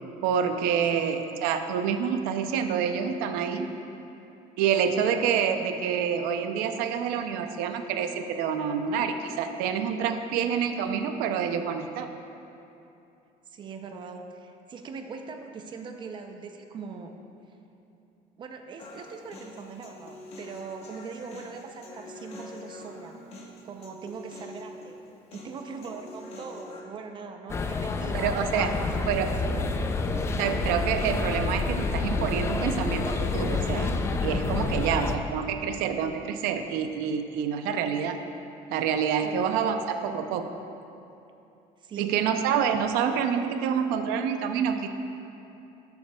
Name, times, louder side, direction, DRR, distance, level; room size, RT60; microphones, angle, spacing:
voice 1, 0.2-3.7 4.6-12.1 28.1-28.7 29.1-29.3 30.4-33.9 34.2-38.2 38.7-40.5 42.0-44.9, right 7 dB, 85° right, 7 dB, 0.5 m, -27 dB
voice 2, 13.5-17.1 18.4-23.2 23.6-25.0 25.3-29.7 34.8-35.0 39.2-39.4 41.8-42.5, right 5 dB, 30° right, 5 dB, 0.5 m, -41 dB
Human voice, 18.8-26.8, left 2 dB, 45° left, 0.9 m, -45 dB
sound 1, 27.5-35.2, left 3 dB, 15° left, 0.3 m, -28 dB
13.0 x 6.9 x 2.3 m, 2.8 s
cardioid pair, 155°, 15 cm